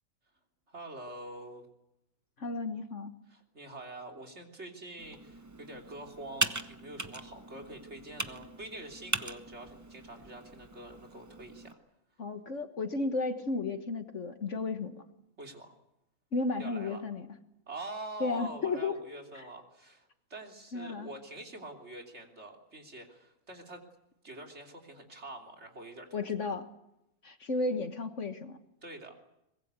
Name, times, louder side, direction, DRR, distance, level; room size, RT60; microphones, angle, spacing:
voice 1, 0.7-1.7 3.3-11.8 15.4-15.7 16.6-17.1 17.7-23.8 24.2-26.5 28.8-29.1, right 2 dB, 45° right, 3 dB, 3.5 m, -45 dB
voice 2, 2.4-3.1 12.2-14.9 16.3-17.3 18.2-19.0 20.7-21.1 26.1-26.6 27.2-28.6, left 3 dB, 55° left, 8 dB, 1.8 m, -33 dB
Computer keyboard, 5.0-11.7, right 2 dB, 15° right, 0.7 m, -39 dB
23.5 x 21.5 x 8.3 m, 0.86 s
omnidirectional pair, 1.6 m